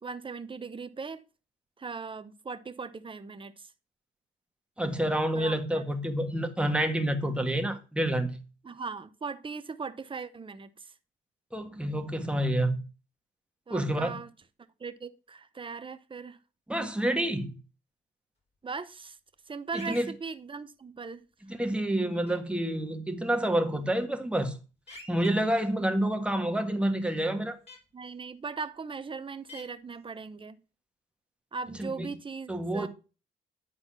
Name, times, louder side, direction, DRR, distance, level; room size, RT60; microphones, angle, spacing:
voice 1, 0.0-1.2 1.8-3.7 5.3-5.9 8.6-10.9 13.7-14.3 14.8-16.4 18.6-19.2 19.5-21.2 27.9-30.6 31.5-32.9, right 5 dB, 25° right, 0.9 m, -39 dB
voice 2, 4.8-8.4 11.5-12.8 13.7-14.2 16.7-17.5 19.8-20.1 21.5-24.6 25.1-27.6 31.8-32.1 32.5-32.9, right 1 dB, 5° right, 1.6 m, -28 dB
sound 1, 19.7-20.1 22.3-22.4 24.9-25.3 27.7-27.8 29.5-29.6, left 2 dB, 30° left, 4.6 m, -45 dB
9.8 x 4.3 x 5.7 m
cardioid pair, 90°, 20 cm